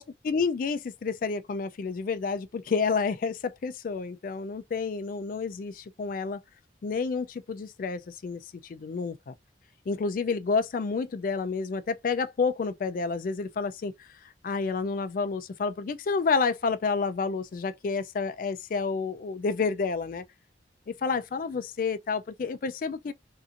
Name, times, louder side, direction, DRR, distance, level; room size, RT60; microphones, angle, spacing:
voice 1, 0.0-6.4 6.8-9.3 9.9-14.1 14.4-20.2 20.9-23.1, left 4 dB, 50° left, 0.3 m, -29 dB
2.8 x 2.5 x 2.5 m
head